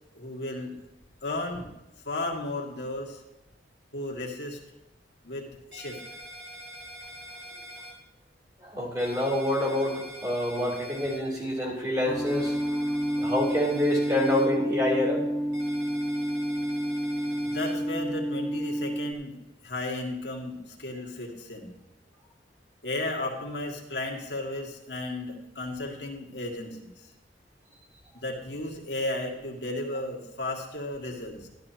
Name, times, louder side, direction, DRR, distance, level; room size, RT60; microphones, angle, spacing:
voice 1, 0.1-0.7 1.2-1.7 2.0-3.2 3.9-4.6 5.2-6.0 17.4-19.4 19.6-21.8 22.8-27.1 28.1-31.5, left 2 dB, 75° left, -1 dB, 2.0 m, -34 dB
sound 1, 5.7-7.9 9.0-11.2 12.3-14.5 15.5-17.7, equal, 85° right, 3.5 m, -44 dB
voice 2, 8.6-12.6 13.2-15.2, left 1 dB, 20° right, -4 dB, 3.3 m, -27 dB
sound 2, 12.1-19.1, equal, 10° left, 1.4 m, -29 dB
13.0 x 12.0 x 2.9 m, 0.96 s
head